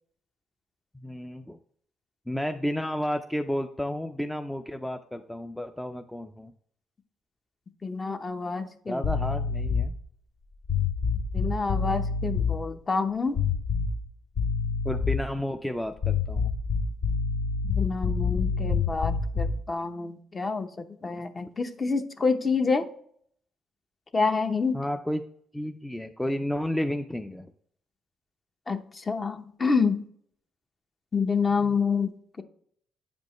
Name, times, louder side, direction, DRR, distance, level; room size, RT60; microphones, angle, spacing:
voice 1, 0.9-1.6 2.3-6.5 8.9-9.9 14.8-16.5 21.0-21.2 24.7-25.2 25.5-27.5 31.6-31.7, equal, 5° left, 6 dB, 0.4 m, -32 dB
voice 2, 7.8-9.0 11.3-13.4 17.6-22.9 24.1-24.8 28.7-30.0 31.1-32.4, left 4 dB, 30° left, 7 dB, 0.8 m, -28 dB
sound 1, 9.0-10.0 10.7-12.6 13.4-14.1 14.4-15.3 16.0-19.7, left 5 dB, 60° left, 0.8 m, -27 dB
9.1 x 5.3 x 3.0 m, 0.64 s
cardioid pair, 90°, 0 cm